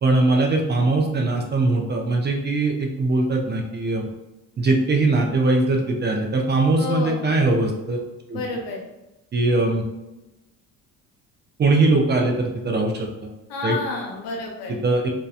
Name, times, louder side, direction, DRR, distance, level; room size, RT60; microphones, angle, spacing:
voice 1, 0.0-4.0 4.6-8.0 8.3-8.4 9.3-9.8 11.6-13.1 13.6-13.8 14.8-15.1, right 2 dB, 25° right, 1 dB, 0.4 m, -21 dB
voice 2, 6.8-7.2 8.3-8.8 13.5-14.7, left 4 dB, 80° left, 0 dB, 0.8 m, -29 dB
2.8 x 2.1 x 2.3 m, 0.97 s
supercardioid pair, 85°, 40 cm